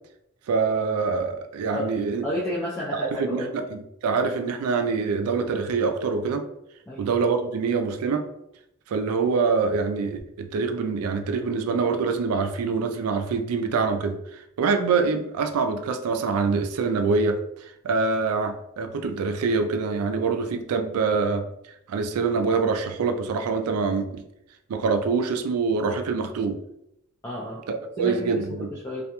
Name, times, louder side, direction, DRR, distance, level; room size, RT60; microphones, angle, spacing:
voice 1, 0.5-2.2 2.9-6.4 7.0-8.3 8.9-21.5 21.9-24.2 24.7-26.6 27.7-28.7, right 4 dB, 80° right, 6 dB, 0.3 m, -25 dB
voice 2, 2.2-3.6 6.9-7.1 27.2-27.6 28.0-28.4 28.8-29.0, left 1 dB, 10° left, -7 dB, 0.3 m, -31 dB
2.3 x 2.2 x 2.8 m, 0.80 s
head